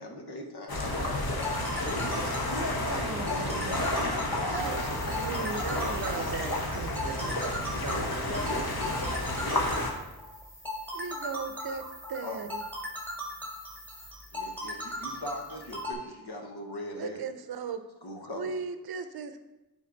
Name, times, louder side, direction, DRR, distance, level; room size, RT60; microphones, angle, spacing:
voice 1, 0.0-1.6 2.5-6.3 12.2-12.4 13.9-17.2 18.0-18.5, left 1 dB, 90° left, 2 dB, 1.1 m, -39 dB
sound 1, 0.7-9.9, left 1 dB, 70° left, 1.2 m, -31 dB
sound 2, 1.2-15.9, left 1 dB, 5° left, 1.5 m, -37 dB
voice 2, 1.8-2.5 8.3-9.5, left 3 dB, 40° left, 3 dB, 0.9 m, -43 dB
voice 3, 2.8-8.6 10.9-11.8 12.1-12.6 16.9-17.8 18.3-19.4, right 6 dB, 70° right, 9 dB, 0.6 m, -38 dB
sound 3, 4.5-15.9, equal, 25° left, 2.5 m, -51 dB
9.3 x 4.1 x 3.8 m, 1.0 s
wide cardioid pair, 90°, 38 cm